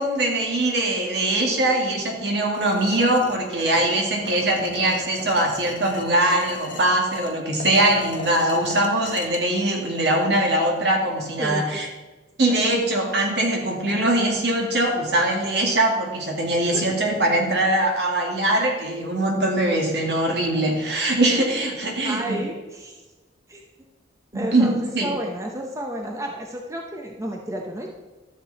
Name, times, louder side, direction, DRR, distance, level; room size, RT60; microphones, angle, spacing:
voice 1, 0.0-11.9 12.4-22.4 24.3-25.1, right 1 dB, 60° right, 0 dB, 2.2 m, -22 dB
sound 1, 2.5-9.4, left 3 dB, 45° left, 1.0 m, -37 dB
voice 2, 11.4-11.8 16.7-16.8 22.0-23.0 23.5-23.9 24.3-27.9, right 1 dB, 15° right, 1 dB, 0.7 m, -31 dB
13.0 x 6.8 x 4.1 m, 1.2 s
head